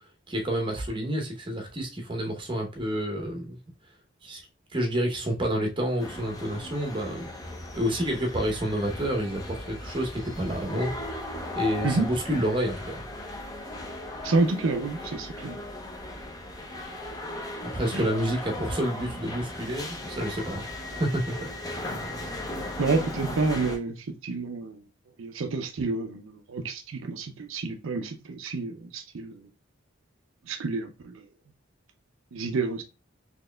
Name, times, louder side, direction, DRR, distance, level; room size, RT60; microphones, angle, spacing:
voice 1, 0.3-3.6 4.2-4.4 4.7-7.3 7.7-10.9 11.5-13.0 17.6-21.5, equal, 25° right, 0.8 m, -29 dB
sound 1, 6.0-23.8, left 1 dB, 15° left, 0.5 m, -37 dB
voice 2, 14.2-15.6 17.9-18.1 22.8-24.8 25.2-29.5 30.5-31.2 32.3-32.8, right 3 dB, 70° right, 0.5 m, -29 dB
4.1 x 2.9 x 2.2 m
head